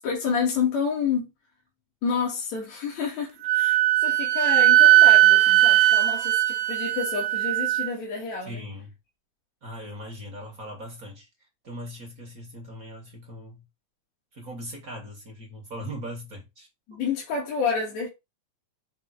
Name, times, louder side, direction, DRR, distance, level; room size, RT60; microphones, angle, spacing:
voice 1, 0.0-1.3 2.0-8.6 16.9-18.1, left 5 dB, 65° left, 3.5 m, -29 dB
Wind instrument woodwind instrument, 3.4-7.9, right 16 dB, 90° right, 2.1 m, -18 dB
voice 2, 8.4-8.9 9.6-11.3 11.6-13.6 14.3-16.7, equal, 40° right, 1.5 m, -39 dB
7.4 x 3.5 x 4.8 m
omnidirectional pair, 3.4 m